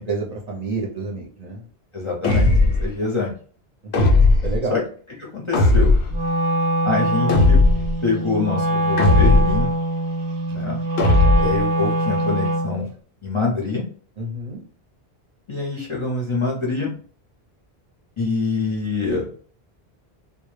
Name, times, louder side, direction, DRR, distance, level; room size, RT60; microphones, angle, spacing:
voice 1, 0.0-1.6 3.8-3.9 4.4-4.7 14.2-14.6, right 3 dB, 45° right, -2 dB, 0.6 m, -29 dB
voice 2, 1.9-3.3 4.7-4.8 5.2-5.9 6.8-7.6 8.0-9.7 10.5-10.8 11.4-12.9 13.2-13.8 15.5-16.9 18.2-19.3, left 3 dB, 40° left, -2 dB, 0.5 m, -25 dB
sound 1, 2.2-2.9 3.9-4.6 5.5-6.2 7.3-7.9 9.0-9.7 11.0-11.6, left 2 dB, 85° left, 0.8 m, -16 dB
Wind instrument woodwind instrument, 6.1-12.8, right 1 dB, 90° right, 0.8 m, -23 dB
2.1 x 2.0 x 3.0 m, 0.43 s
omnidirectional pair, 1.0 m